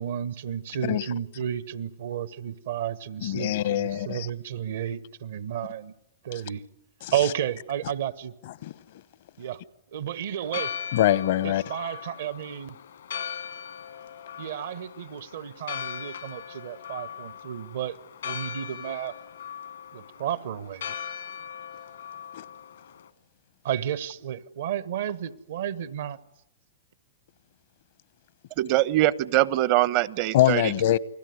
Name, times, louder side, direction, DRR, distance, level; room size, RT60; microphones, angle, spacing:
voice 1, 0.0-5.9 6.2-6.6 7.1-8.3 9.4-9.6 9.9-10.7 11.4-12.8 14.4-18.0 18.2-19.1 19.9-21.0 23.6-26.2, right 10 dB, 70° right, 1.4 m, -32 dB
voice 2, 3.2-4.3 8.6-8.7 10.9-11.6 22.3-22.4 30.3-31.0, left 13 dB, 65° left, 1.0 m, -23 dB
Church bell, 10.4-23.1, left 8 dB, 80° left, 1.8 m, -39 dB
voice 3, 28.6-30.7, right 15 dB, 50° right, 0.9 m, -23 dB
29.0 x 20.0 x 9.6 m
hypercardioid pair, 115°, 0 cm